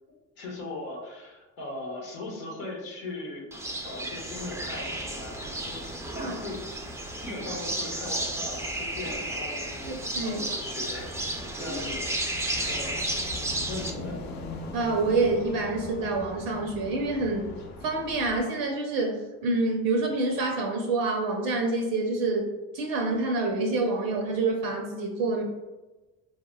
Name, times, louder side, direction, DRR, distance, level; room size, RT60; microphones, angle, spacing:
voice 1, 0.4-3.5 3.8-5.8 6.1-6.9 7.2-13.1 13.6-14.2, left 2 dB, 85° left, -3 dB, 0.9 m, -39 dB
sound 1, 3.5-13.9, right 1 dB, 10° right, 0.4 m, -33 dB
sound 2, 4.3-18.4, left 3 dB, 45° left, 0.6 m, -43 dB
voice 2, 9.9-10.4 11.7-11.8 14.7-17.5 17.8-22.5 22.7-25.4, right 3 dB, 70° right, 1 dB, 0.6 m, -27 dB
4.1 x 2.1 x 2.2 m, 1.2 s
hypercardioid pair, 60°, 39 cm